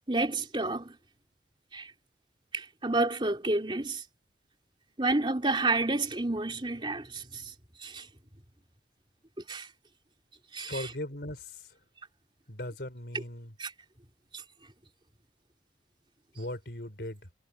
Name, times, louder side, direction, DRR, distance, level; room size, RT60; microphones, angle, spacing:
voice 1, 0.1-0.9 1.7-1.9 2.5-4.0 5.0-7.5 7.8-8.0 9.5-9.7 10.5-10.9 13.1-13.2 13.6-13.7, right 2 dB, 25° right, 3.0 m, -30 dB
voice 2, 10.7-11.4 12.5-13.5 16.4-17.2, left 1 dB, 60° left, 4.4 m, -38 dB
head